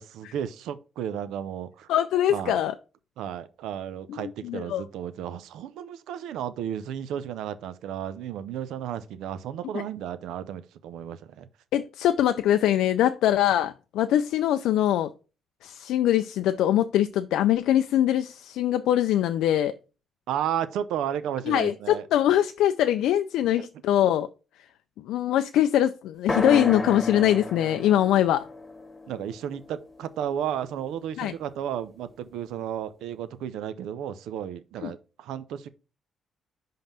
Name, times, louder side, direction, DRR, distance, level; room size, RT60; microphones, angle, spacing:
voice 1, 0.0-1.9 2.3-2.6 3.2-11.5 20.3-22.0 23.6-23.7 29.1-35.7, right 9 dB, 85° right, 0.6 m, -33 dB
voice 2, 1.9-2.7 4.1-4.8 9.7-9.8 11.7-15.1 15.6-19.7 21.5-24.3 25.0-28.4 31.2-31.3 34.8-34.9, left 11 dB, 85° left, 0.3 m, -23 dB
sound 1, 26.3-30.2, left 2 dB, 20° left, 1.3 m, -32 dB
5.4 x 3.8 x 5.6 m
cardioid pair, 90°, 0 cm